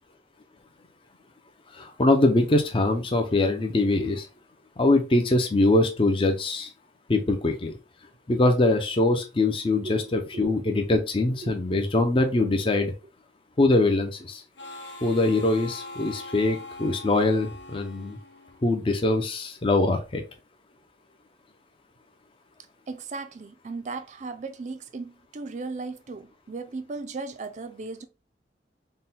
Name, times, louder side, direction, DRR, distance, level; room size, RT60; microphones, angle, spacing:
voice 1, 1.7-4.3 4.8-6.7 7.1-7.8 8.3-12.9 13.6-14.4 15.0-18.2 18.6-20.2, left 2 dB, 30° left, 0.5 m, -23 dB
voice 2, 9.8-10.5 11.4-11.5 22.9-28.0, right 3 dB, 40° right, 0.4 m, -37 dB
Harmonica, 14.6-19.0, left 2 dB, 85° left, 0.8 m, -42 dB
3.7 x 2.2 x 4.1 m
head